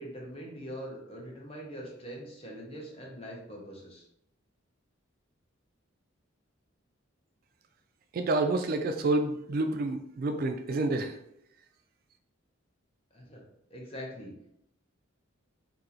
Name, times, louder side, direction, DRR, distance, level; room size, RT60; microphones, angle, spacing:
voice 1, 0.0-4.1 13.1-13.4 13.7-14.3, equal, 30° left, -2 dB, 0.8 m, -43 dB
voice 2, 8.1-11.2, right 2 dB, 45° right, 6 dB, 0.3 m, -28 dB
2.8 x 2.7 x 3.8 m, 0.74 s
head